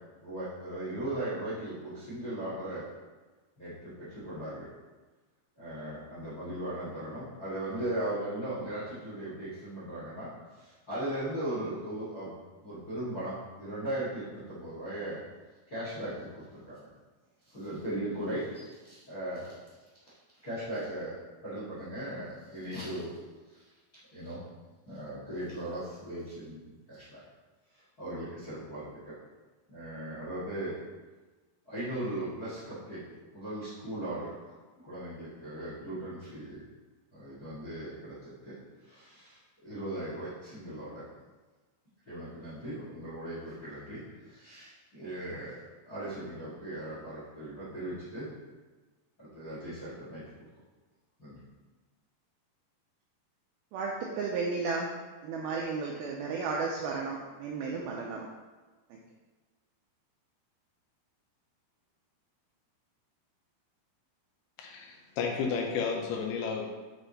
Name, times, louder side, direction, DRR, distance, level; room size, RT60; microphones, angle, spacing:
voice 1, 0.2-2.9 3.6-4.7 5.6-12.3 12.6-15.2 15.7-16.9 17.4-19.6 20.1-20.2 20.4-21.1 21.4-23.2 23.5-23.6 24.1-24.4 24.9-27.2 27.7-29.1 29.7-30.8 31.6-33.0 33.3-34.5 34.8-36.6 37.1-38.5 38.8-41.0 42.1-48.3 49.2-50.2 51.2-51.4, right 1 dB, 60° left, -9 dB, 0.9 m, -38 dB
voice 2, 53.7-54.9 55.2-58.3 58.9-59.0, right 4 dB, 85° right, -1 dB, 2.2 m, -33 dB
voice 3, 64.6-66.7, left 5 dB, 80° left, 1 dB, 2.6 m, -32 dB
8.1 x 3.3 x 4.0 m, 1.3 s
omnidirectional pair, 4.9 m